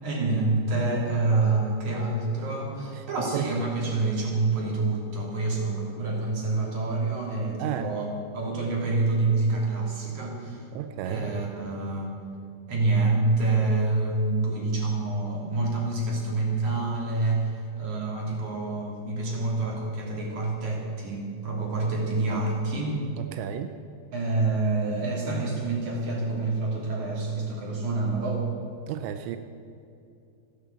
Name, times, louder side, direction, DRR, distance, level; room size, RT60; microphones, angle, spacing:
voice 1, 0.0-8.1 8.3-10.7 11.0-12.2 12.7-23.0 24.1-28.4, right 3 dB, 45° right, -2 dB, 3.9 m, -27 dB
voice 2, 2.9-3.5 7.6-7.9 10.7-11.3 23.2-23.7 28.9-29.4, right 11 dB, 90° right, 8 dB, 3.0 m, -33 dB
14.5 x 11.0 x 8.2 m, 2.5 s
omnidirectional pair, 5.0 m